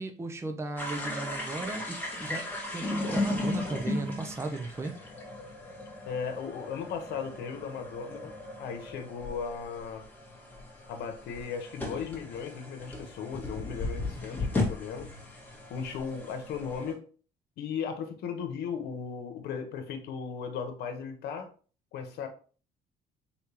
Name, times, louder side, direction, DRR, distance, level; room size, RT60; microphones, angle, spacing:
voice 1, 0.0-5.0, right 2 dB, 15° right, 6 dB, 0.6 m, -36 dB
sound 1, 0.8-16.9, left 2 dB, 10° left, 1.7 m, -36 dB
voice 2, 6.0-8.3 8.6-10.0 10.9-15.1 15.7-17.0 17.6-21.5 21.9-22.3, left 6 dB, 75° left, 6 dB, 1.0 m, -36 dB
4.4 x 3.6 x 2.9 m, 0.40 s
cardioid pair, 110°, 17 cm